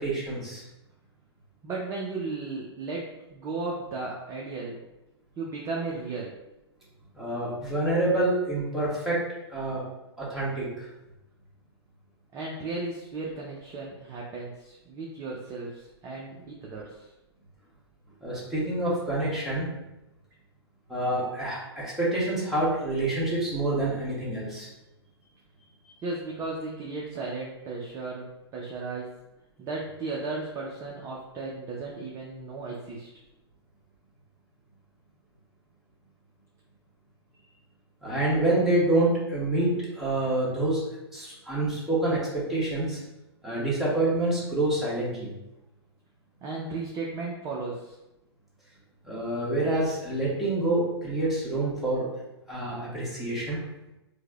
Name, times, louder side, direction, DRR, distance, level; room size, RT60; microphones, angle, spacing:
voice 1, 0.0-0.6 7.2-9.2 9.5-9.8 10.2-10.9 18.2-19.7 20.9-24.7 38.0-40.8 41.1-43.0 43.4-45.3 49.0-52.1 52.5-53.6, right 2 dB, ahead, -9 dB, 1.2 m, -27 dB
voice 2, 1.6-4.8 5.4-6.3 12.3-17.1 26.0-28.3 28.5-29.1 29.6-33.1 46.4-48.0, right 3 dB, 20° right, -3 dB, 0.4 m, -35 dB
4.6 x 2.1 x 2.3 m, 0.95 s
figure-of-eight pair, 115°, 14 cm